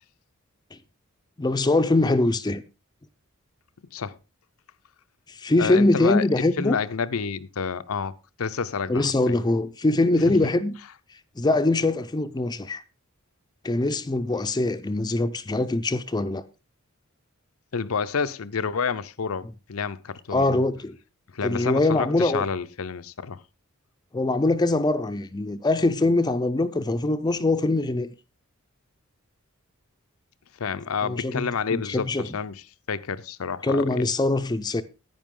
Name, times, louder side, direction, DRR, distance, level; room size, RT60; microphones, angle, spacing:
voice 1, 1.4-2.6 5.3-6.8 8.9-10.7 11.4-12.8 13.6-16.4 20.3-21.0 21.4-22.4 24.1-28.1 31.0-32.3 33.6-34.8, left 2 dB, 20° left, 0.5 m, -23 dB
voice 2, 5.6-9.4 10.2-10.5 17.7-20.6 21.3-23.4 30.6-34.1, left 5 dB, 80° left, 0.6 m, -29 dB
10.5 x 9.5 x 3.7 m
head